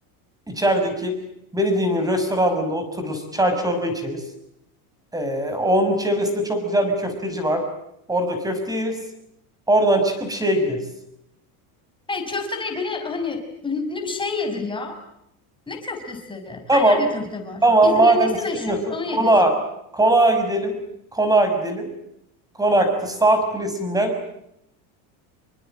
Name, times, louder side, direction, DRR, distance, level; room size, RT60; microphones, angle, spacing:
voice 1, 0.5-1.2 1.5-4.2 5.1-7.6 8.1-9.0 9.7-10.8 16.7-17.0 17.6-18.3 18.6-18.8 19.1-19.5 19.9-20.8 21.1-21.9 22.6-24.1, right 1 dB, 10° right, 7 dB, 6.1 m, -20 dB
voice 2, 12.1-15.0 15.7-19.3, left 4 dB, 10° left, 5 dB, 5.6 m, -29 dB
28.0 x 24.0 x 9.0 m, 0.78 s
cardioid pair, 160°, 46 cm